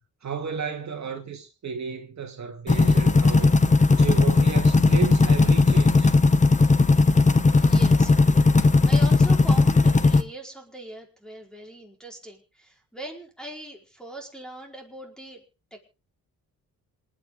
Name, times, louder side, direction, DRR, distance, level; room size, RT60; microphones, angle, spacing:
voice 1, 0.2-6.1, right 6 dB, 50° right, 2.4 m, -34 dB
sound 1, 2.7-10.2, left 3 dB, 20° left, 1.1 m, -17 dB
voice 2, 7.5-15.4 15.7-15.8, right 1 dB, ahead, 4.7 m, -40 dB
27.0 x 9.5 x 3.9 m
wide cardioid pair, 140°, 35 cm